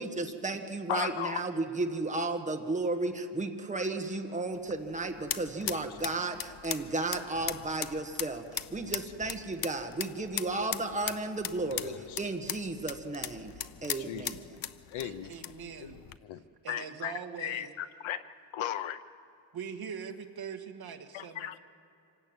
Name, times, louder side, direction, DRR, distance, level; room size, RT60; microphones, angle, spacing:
voice 1, 0.0-13.5 13.8-14.6, right 2 dB, 15° right, 4 dB, 1.5 m, -34 dB
voice 2, 0.9-1.4 5.6-5.8 11.7-12.2 14.1-14.2 14.9-15.3 15.8-15.9 16.3-16.4 16.7-18.2 18.5-19.0 21.1-21.6, left 11 dB, 75° left, 12 dB, 1.0 m, -36 dB
sound 1, 4.5-16.2, left 10 dB, 45° left, 0.6 m, -40 dB
voice 3, 14.9-16.0 16.6-17.7 19.5-21.6, right 7 dB, 50° right, 4 dB, 1.8 m, -42 dB
26.0 x 18.0 x 8.8 m, 2.6 s
wide cardioid pair, 170°, 48 cm